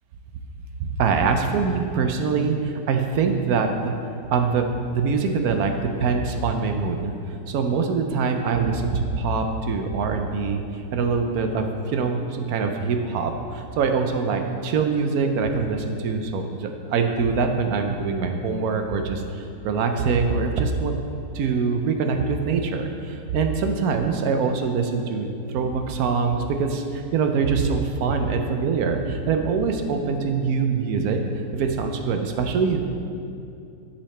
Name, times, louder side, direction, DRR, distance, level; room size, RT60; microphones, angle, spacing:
voice 1, 0.9-3.9 4.3-7.1 7.5-10.6 10.9-21.0 21.3-31.2 31.5-32.9, right 5 dB, 75° right, 5 dB, 1.0 m, -24 dB
9.9 x 5.6 x 3.2 m, 2.5 s
omnidirectional pair, 1.8 m